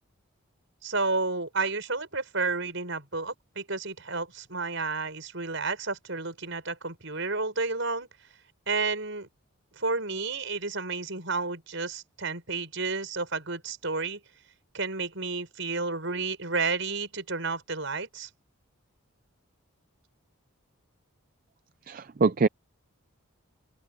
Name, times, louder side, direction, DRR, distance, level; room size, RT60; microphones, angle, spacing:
voice 1, 0.8-8.1 8.7-9.3 9.8-14.2 14.7-18.3, right 3 dB, 60° right, 6.1 m, -31 dB
voice 2, 21.9-22.5, right 4 dB, 40° right, 0.4 m, -24 dB
open air
head